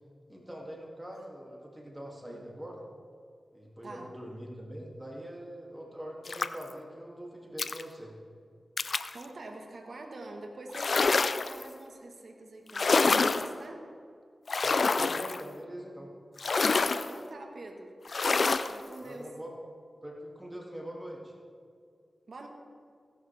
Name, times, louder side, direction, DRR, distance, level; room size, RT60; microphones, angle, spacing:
voice 1, 0.3-2.8 3.5-8.1 14.6-16.1 19.0-19.5 20.0-21.3, equal, 15° right, -2 dB, 2.6 m, -43 dB
voice 2, 3.8-4.2 9.1-13.9 17.1-18.0 18.7-19.3 22.3-22.5, right 2 dB, 70° right, 2 dB, 1.5 m, -46 dB
sound 1, 6.3-6.7 7.6-7.8 8.8-9.1 10.7-11.6 12.7-13.5 14.5-15.4 16.4-17.1 18.1-18.7, left 4 dB, 65° left, 0.5 m, -26 dB
16.5 x 11.5 x 3.5 m, 2.2 s
cardioid pair, 40°, 0 cm